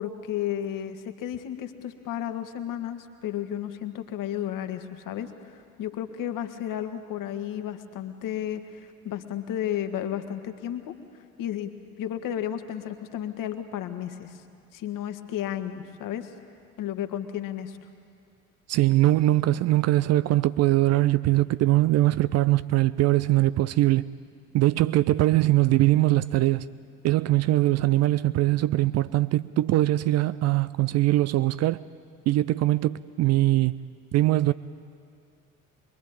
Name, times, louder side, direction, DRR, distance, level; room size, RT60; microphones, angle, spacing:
voice 1, 0.0-10.9 11.4-11.7 12.0-14.4 14.7-16.3 16.8-17.9, left 10 dB, 50° left, 1.8 m, -33 dB
voice 2, 18.7-24.1 24.5-26.7 27.0-31.8 32.3-33.8 34.1-34.5, right 16 dB, 40° right, 0.5 m, -22 dB
23.0 x 23.0 x 8.9 m
figure-of-eight pair, 55°, 42 cm